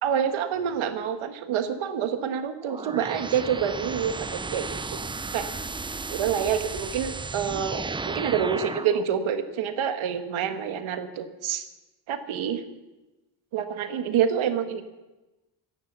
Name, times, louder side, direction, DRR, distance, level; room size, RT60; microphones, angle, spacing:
voice 1, 0.0-5.0 5.3-5.5 6.1-11.6 12.1-12.6 13.5-14.8, right 8 dB, 75° right, 8 dB, 1.6 m, -27 dB
sound 1, 2.6-9.0, right 3 dB, 10° right, 0.4 m, -34 dB
15.5 x 10.5 x 7.0 m, 1.1 s
cardioid pair, 95°, 48 cm